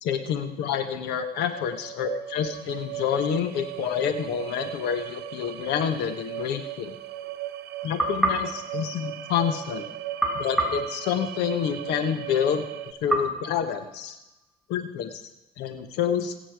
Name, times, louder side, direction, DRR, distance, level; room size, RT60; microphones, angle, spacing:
voice 1, 0.0-6.9 7.8-9.9 10.3-14.2 14.7-15.1 15.6-16.3, left 8 dB, 80° left, 9 dB, 1.3 m, -28 dB
sound 1, 1.4-12.9, right 12 dB, 80° right, 0.9 m, -37 dB
sound 2, 8.0-9.6 10.2-11.8 13.1-14.5, right 1 dB, ahead, 3.9 m, -30 dB
20.5 x 8.5 x 4.8 m, 0.97 s
cardioid pair, 110°, 17 cm